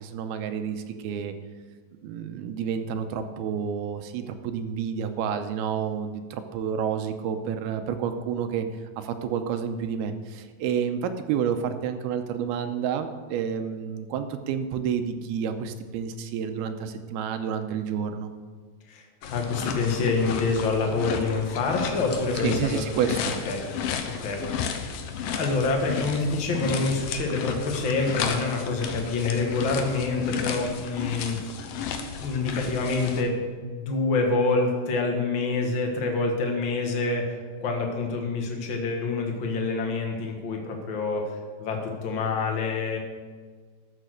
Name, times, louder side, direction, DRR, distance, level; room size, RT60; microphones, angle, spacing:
voice 1, 0.0-1.3 2.0-8.7 9.0-18.3 22.4-23.3, right 7 dB, 85° right, 7 dB, 2.7 m, -29 dB
voice 2, 18.9-22.8 23.4-23.6 24.0-24.9 25.3-31.5 32.2-43.0, left 3 dB, 55° left, 2 dB, 1.3 m, -27 dB
sound 1, 19.2-33.2, left 7 dB, 70° left, 2.3 m, -33 dB
13.5 x 6.7 x 6.4 m, 1.6 s
omnidirectional pair, 4.6 m